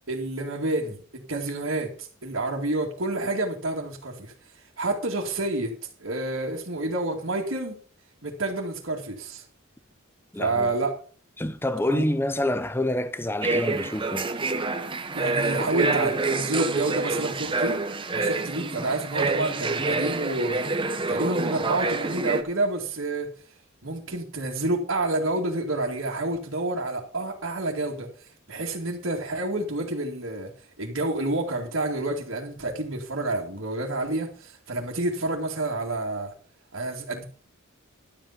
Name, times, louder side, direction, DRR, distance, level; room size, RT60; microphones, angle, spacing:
voice 1, 0.1-5.7 6.0-7.8 8.2-9.4 10.4-10.9 11.9-12.1 15.1-17.8 18.1-23.3 23.8-30.5 30.8-36.3 36.7-37.2, right 2 dB, 70° right, 2.4 m, -29 dB
voice 2, 10.3-10.7 11.4-14.3 21.0-21.1, left 1 dB, 10° left, 0.8 m, -27 dB
sound 1, 13.4-22.4, right 3 dB, 25° right, 1.0 m, -27 dB
12.0 x 8.4 x 5.9 m
head